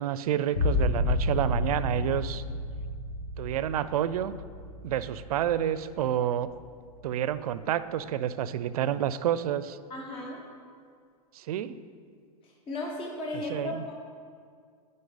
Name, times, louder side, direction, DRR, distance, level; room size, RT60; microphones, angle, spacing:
voice 1, 0.0-2.4 3.4-4.4 4.8-6.5 7.0-9.8 11.3-11.8 13.3-13.8, right 10 dB, 70° right, 14 dB, 0.4 m, -29 dB
sound 1, 0.5-6.0 6.4-7.1, left 2 dB, 60° left, 1.5 m, -31 dB
voice 2, 9.9-10.4 12.7-13.9, left 2 dB, 25° left, -2 dB, 1.1 m, -35 dB
9.8 x 5.3 x 3.9 m, 2.1 s
hypercardioid pair, 130°, 20 cm